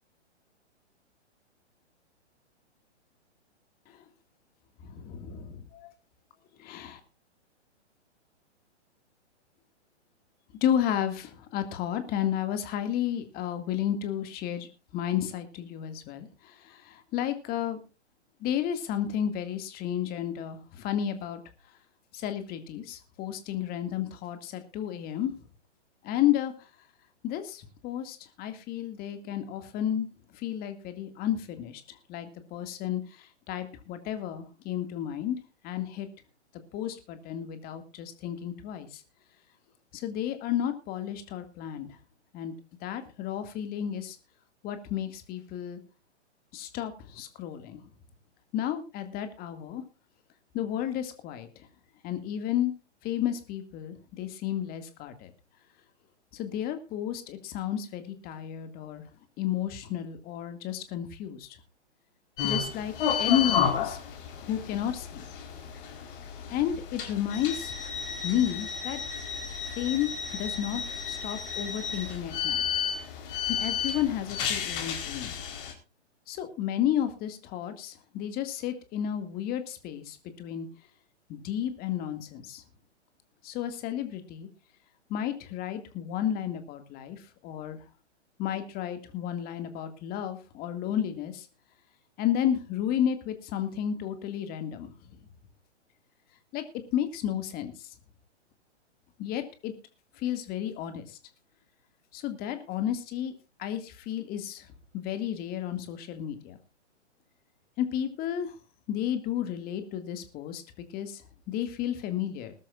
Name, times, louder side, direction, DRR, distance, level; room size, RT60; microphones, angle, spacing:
voice 1, 4.8-5.9 6.6-7.0 10.6-14.7 14.9-17.8 18.4-21.4 22.1-25.4 26.0-26.5 27.2-30.1 30.3-31.8 32.1-35.4 35.6-36.1 36.7-39.0 39.9-41.9 42.3-42.5 42.8-44.2 44.6-45.8 46.5-47.8 48.5-49.8 50.5-51.5 52.0-52.7 53.0-55.3 56.3-59.0 59.4-61.5 62.4-62.9 63.2-64.0 64.5-65.3 66.5-67.8 68.2-69.0 69.7-72.6 73.5-75.3 76.3-80.7 81.3-82.6 83.4-84.5 85.1-87.8 88.4-91.5 92.2-94.9 96.5-96.6 96.9-97.7 99.2-99.7 100.2-101.2 102.1-103.3 103.6-104.7 104.9-106.6 107.8-108.5 108.9-110.6 110.9-111.2 111.5-112.5, left 10 dB, 25° left, 8 dB, 2.2 m, -32 dB
sound 1, 62.4-75.7, left 7 dB, 45° left, 4.2 m, -32 dB
20.5 x 13.0 x 2.5 m, 0.31 s
hypercardioid pair, 135°, 35 cm